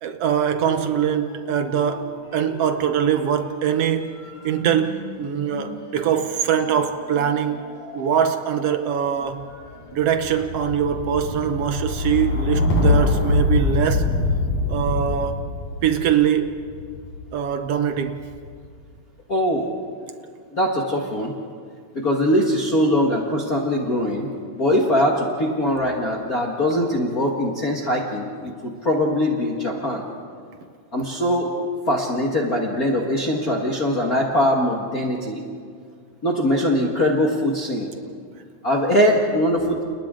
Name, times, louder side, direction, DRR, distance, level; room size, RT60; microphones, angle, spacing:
voice 1, 0.0-4.1 4.4-7.7 7.9-9.5 9.9-14.1 14.7-15.5 15.8-16.5 17.3-18.2, right 8 dB, 65° right, 1.6 m, -22 dB
sound 1, 0.6-1.9 2.2-17.2 18.0-18.6, left 2 dB, 85° left, 7.4 m, -26 dB
voice 2, 19.3-19.7 20.5-21.3 21.9-24.3 24.5-30.0 30.9-31.5 31.9-35.4 36.2-37.9 38.6-39.8, equal, 35° left, 1.7 m, -22 dB
29.5 x 29.5 x 3.8 m
omnidirectional pair, 3.6 m